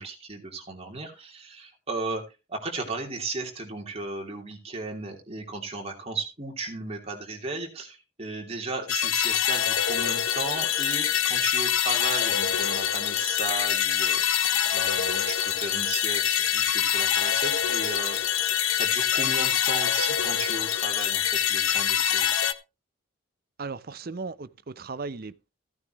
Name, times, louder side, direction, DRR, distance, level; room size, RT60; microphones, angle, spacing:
voice 1, 0.0-2.2 2.5-18.2 18.7-22.4, right 3 dB, 30° right, 2.9 m, -35 dB
sound 1, 8.9-22.5, left 10 dB, 80° left, 0.8 m, -25 dB
voice 2, 23.6-25.5, right 4 dB, 45° right, 0.6 m, -36 dB
15.0 x 9.5 x 3.1 m
head